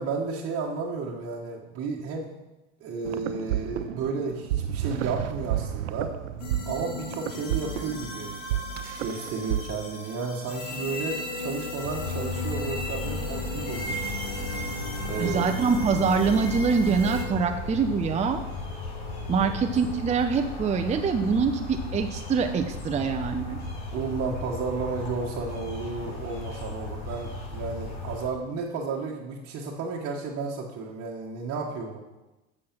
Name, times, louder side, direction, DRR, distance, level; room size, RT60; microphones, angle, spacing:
voice 1, 0.0-2.3 2.8-6.1 6.6-8.3 9.0-14.1 15.0-15.7 23.9-32.0, right 4 dB, 40° right, -3 dB, 1.4 m, -32 dB
sound 1, 3.0-9.6, right 12 dB, 85° right, 0.6 m, -31 dB
sound 2, 6.4-17.2, left 1 dB, 85° left, 2.3 m, -36 dB
sound 3, 11.8-28.3, left 3 dB, 50° left, 3.6 m, -35 dB
voice 2, 15.2-18.4 19.3-23.6, right 5 dB, 20° right, 5 dB, 0.6 m, -24 dB
8.5 x 6.5 x 5.9 m, 1.1 s
hypercardioid pair, 90°, 36 cm